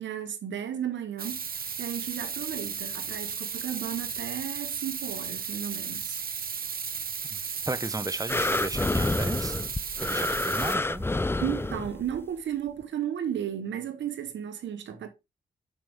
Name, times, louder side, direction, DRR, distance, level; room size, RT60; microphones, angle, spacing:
voice 1, 0.0-6.2 10.1-10.2 11.4-15.1, right 9 dB, 80° right, 1.2 m, -34 dB
sound 1, 1.2-10.8, right 6 dB, 55° right, 0.9 m, -35 dB
voice 2, 7.7-9.6 10.0-11.1, right 2 dB, 20° right, 1.0 m, -34 dB
sound 2, 8.3-12.2 12.8-12.9, left 2 dB, 10° left, 0.4 m, -28 dB
6.6 x 5.9 x 3.5 m
supercardioid pair, 45°, 19 cm